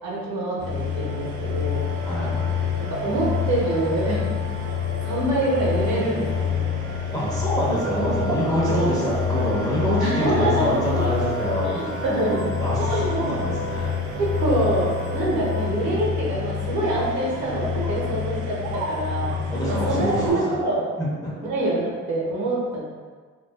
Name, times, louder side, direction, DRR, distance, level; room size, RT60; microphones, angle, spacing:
voice 1, 0.0-1.8 2.9-4.3 5.0-6.7 8.7-8.8 10.0-10.7 11.6-12.4 12.9-13.1 14.2-19.3 19.7-20.8 21.4-22.8, right 1 dB, 70° right, -6 dB, 0.9 m, -25 dB
sound 1, 0.6-20.3, left 5 dB, 90° right, 0.5 m, -27 dB
voice 2, 7.1-12.0 12.6-13.9 19.5-20.5 21.0-21.3, equal, 10° left, -8 dB, 0.8 m, -26 dB
2.4 x 2.3 x 2.3 m, 1.5 s
cardioid pair, 90°, 30 cm